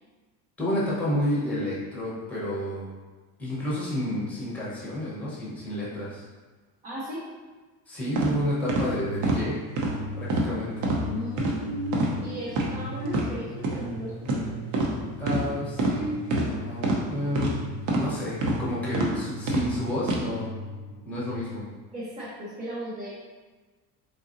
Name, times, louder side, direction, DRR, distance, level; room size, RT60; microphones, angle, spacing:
voice 1, 0.6-2.9 3.4-6.2 7.9-9.6 10.2-10.7 15.2-17.6 18.0-20.5 21.0-21.6, left 1 dB, 5° left, -8 dB, 0.9 m, -30 dB
voice 2, 6.8-7.3 11.1-14.5 21.9-23.1, equal, 20° right, -8 dB, 0.5 m, -36 dB
sound 1, 8.1-8.3 8.7-8.8 9.2-9.4 9.8-9.9 10.3-10.5 10.8-11.0 11.4-11.5 11.9-12.1 12.5-12.7 13.1-13.2 13.6-13.8 14.2-14.4 14.7-14.9 15.2-15.4 15.8-16.0 16.3-16.5 16.8-17.0 17.3-17.5 17.9-18.1 18.4-18.6 18.9-19.1 19.5-19.7 20.0-20.2, right 2 dB, 50° right, 0.8 m, -25 dB
sound 2, 8.6-21.4, left 1 dB, 85° left, 0.7 m, -39 dB
4.0 x 3.9 x 2.6 m, 1.3 s
cardioid pair, 175°, 37 cm